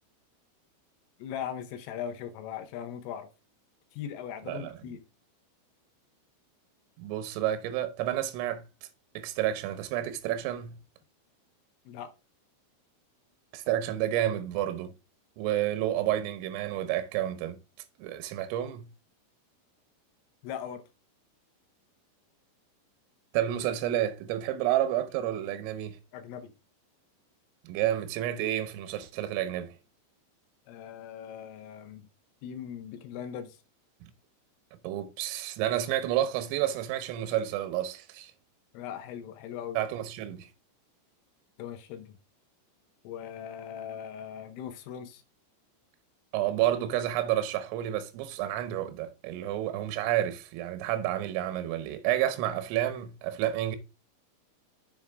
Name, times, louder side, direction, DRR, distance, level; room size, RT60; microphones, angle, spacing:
voice 1, 1.2-3.3 3.9-5.0 11.9-12.1 20.4-20.8 26.1-26.5 30.7-32.1 32.4-33.6 38.7-39.8 41.6-42.1 43.1-45.2, left 9 dB, 80° left, 3.4 m, -39 dB
voice 2, 7.0-8.7 9.2-10.8 13.5-14.9 15.4-17.6 18.0-18.9 23.3-26.0 27.7-29.8 34.0-34.1 34.8-38.3 39.8-40.5 46.3-53.8, right 12 dB, 85° right, 3.5 m, -30 dB
7.5 x 7.1 x 3.5 m
omnidirectional pair, 5.9 m